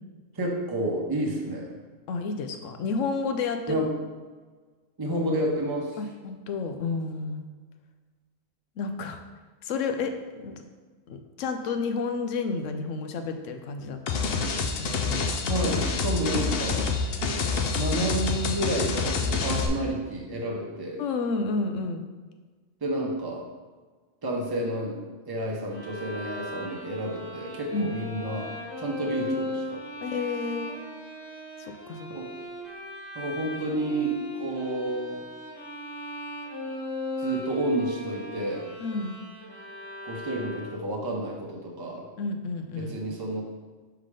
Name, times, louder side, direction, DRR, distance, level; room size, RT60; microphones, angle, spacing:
voice 1, 0.3-1.7 3.7-3.9 5.0-6.0 15.4-16.9 17.8-21.0 22.8-23.4 24.2-25.0 25.3-29.8 32.1-32.3 33.1-35.2 37.2-38.7 40.0-42.1 42.8-43.4, right 1 dB, 20° right, -1 dB, 0.8 m, -30 dB
voice 2, 2.1-3.8 6.0-7.4 8.8-9.2 9.6-10.6 11.1-14.3 14.8-15.4 21.0-22.0 27.7-27.9 30.0-30.7 31.9-32.1 38.8-39.1 42.2-42.9, left 4 dB, 85° left, 6 dB, 1.0 m, -31 dB
sound 1, 14.1-19.7, left 4 dB, 60° left, 0.7 m, -27 dB
Bowed string instrument, 25.7-41.0, left 1 dB, 20° left, 1.4 m, -38 dB
5.7 x 3.6 x 4.9 m, 1.4 s
omnidirectional pair, 1.3 m